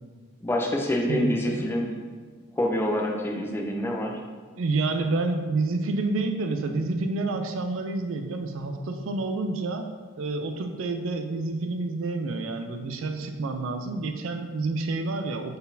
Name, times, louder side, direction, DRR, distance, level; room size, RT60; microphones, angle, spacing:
voice 1, 0.4-1.8 2.5-4.1, left 1 dB, 10° left, 0 dB, 0.3 m, -26 dB
voice 2, 1.1-1.7 4.6-15.6, right 3 dB, 70° right, 6 dB, 0.4 m, -29 dB
4.0 x 3.9 x 2.6 m, 1.5 s
head